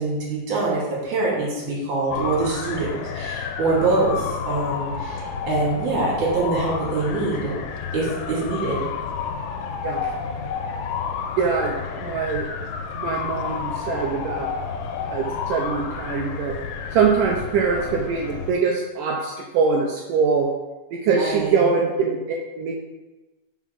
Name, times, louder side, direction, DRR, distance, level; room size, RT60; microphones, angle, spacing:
voice 1, 0.0-2.9 3.1-7.6 7.9-8.8 21.0-21.6, right 3 dB, 55° right, -6 dB, 3.1 m, -24 dB
sound 1, 2.1-18.5, left 6 dB, 85° left, 2.5 m, -30 dB
voice 2, 11.4-12.5 13.0-14.5 15.0-16.6 16.9-20.5 20.9-22.7, right 5 dB, 80° right, -1 dB, 1.9 m, -23 dB
5.9 x 3.9 x 5.8 m, 1.1 s
omnidirectional pair, 4.4 m